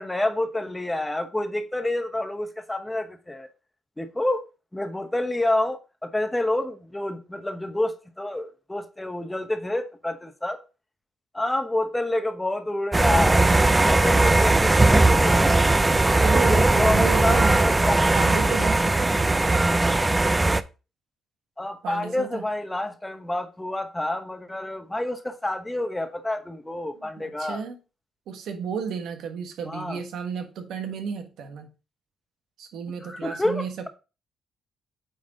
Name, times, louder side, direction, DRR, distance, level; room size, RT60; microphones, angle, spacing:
voice 1, 0.0-3.5 4.0-4.4 4.7-10.6 11.3-15.5 15.8-18.4 21.6-27.6 29.6-30.0 33.0-33.9, left 1 dB, 10° left, 1.0 m, -28 dB
sound 1, 12.9-20.6, right 2 dB, 15° right, 0.4 m, -19 dB
voice 2, 15.5-19.6 21.8-22.4 27.2-27.8 28.3-31.7 32.6-33.9, right 6 dB, 80° right, 1.4 m, -33 dB
8.7 x 4.0 x 3.7 m
cardioid pair, 90°, 0 cm